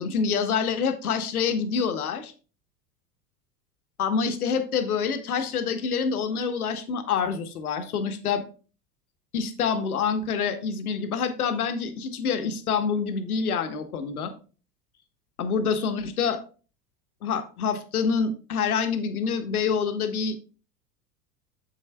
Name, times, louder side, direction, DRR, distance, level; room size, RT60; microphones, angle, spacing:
voice 1, 0.0-2.3 4.0-8.4 9.3-14.3 15.4-16.4 17.2-20.3, left 6 dB, 65° left, 8 dB, 1.3 m, -26 dB
8.5 x 8.1 x 2.3 m, 0.36 s
figure-of-eight pair, 80°, 47 cm